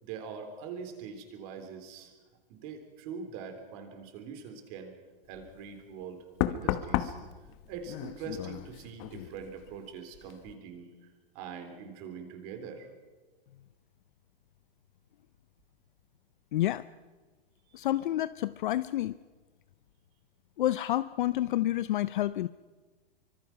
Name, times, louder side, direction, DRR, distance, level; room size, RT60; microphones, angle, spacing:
voice 1, 0.0-2.1 2.5-4.9 5.3-7.2 7.7-11.1 11.3-12.9 17.7-17.9, right 6 dB, 35° right, 6 dB, 3.5 m, -43 dB
Knock, 5.3-5.6 6.4-9.9 10.1-10.5, left 13 dB, 30° left, 1.0 m, -34 dB
voice 2, 16.5-16.9 17.7-19.1 20.6-22.5, left 14 dB, 55° left, 16 dB, 0.6 m, -29 dB
25.0 x 24.5 x 5.8 m, 1.3 s
hypercardioid pair, 160°, 30 cm